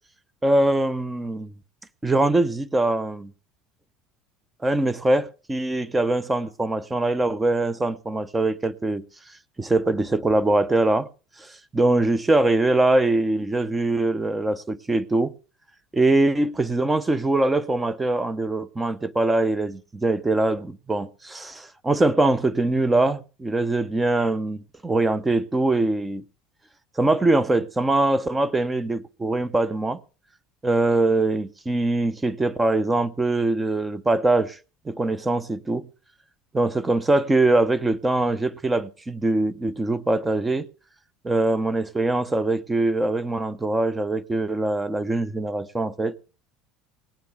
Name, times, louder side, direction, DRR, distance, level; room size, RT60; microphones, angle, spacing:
voice 1, 0.4-1.5 2.0-3.3 4.6-9.0 9.6-11.1 11.4-15.3 15.9-26.2 27.0-30.0 30.6-34.6 34.9-35.9 36.5-40.7 41.2-46.1, right 2 dB, 15° right, 0.7 m, -22 dB
18.5 x 9.6 x 3.5 m
supercardioid pair, 115°, 0 cm